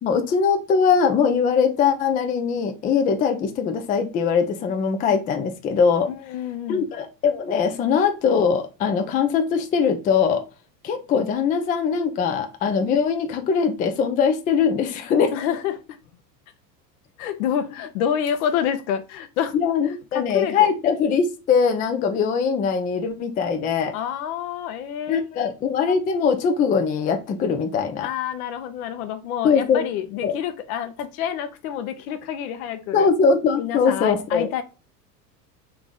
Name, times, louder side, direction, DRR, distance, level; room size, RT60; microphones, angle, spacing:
voice 1, 0.0-6.1 6.7-10.4 10.8-15.3 19.5-24.0 25.1-28.1 29.4-29.8 30.2-30.3 32.9-34.5, left 6 dB, 20° left, 0.4 m, -21 dB
voice 2, 6.1-6.9 15.3-15.8 17.2-19.5 20.1-20.7 23.9-25.5 28.0-33.1 33.6-34.6, left 9 dB, 60° left, 0.8 m, -28 dB
3.8 x 3.0 x 3.6 m
hypercardioid pair, 80°, 50 cm